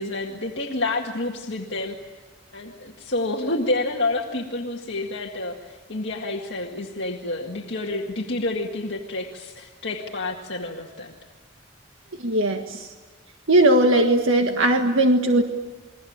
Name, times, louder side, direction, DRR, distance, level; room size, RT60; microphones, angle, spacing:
voice 1, 0.0-2.0 2.5-11.1, left 2 dB, 60° left, 0 dB, 2.0 m, -29 dB
voice 2, 12.2-12.9 13.5-15.4, right 1 dB, 75° right, 4 dB, 1.7 m, -19 dB
29.5 x 21.5 x 8.8 m, 1.3 s
head